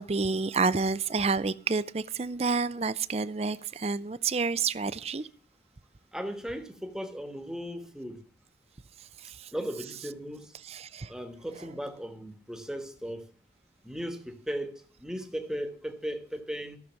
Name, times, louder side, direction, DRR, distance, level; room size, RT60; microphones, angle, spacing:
voice 1, 0.0-5.3 9.2-9.5 10.6-11.1, right 4 dB, 35° right, 0.5 m, -29 dB
voice 2, 6.1-8.2 9.5-10.5 11.1-13.2 13.8-16.8, equal, 5° right, 1.3 m, -37 dB
14.0 x 6.7 x 7.4 m
head